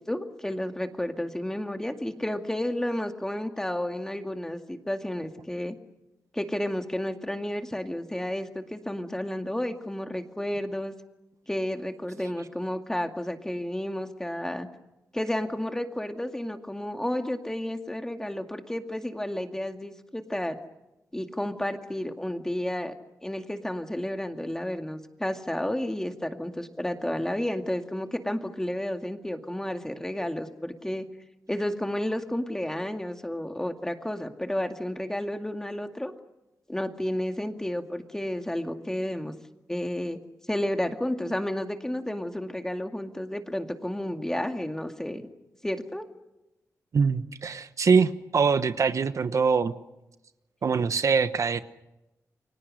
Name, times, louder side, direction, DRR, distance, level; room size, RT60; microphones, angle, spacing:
voice 1, 0.1-5.8 6.3-10.9 11.5-14.7 15.1-20.6 21.1-22.9 23.2-31.1 31.5-36.1 36.7-39.3 39.7-40.2 40.5-45.2 45.6-46.0, left 1 dB, 10° left, 6 dB, 2.1 m, -31 dB
voice 2, 46.9-49.7 50.6-51.6, right 5 dB, 60° right, 11 dB, 1.0 m, -23 dB
30.0 x 24.0 x 6.5 m, 0.96 s
wide cardioid pair, 110°, 6 cm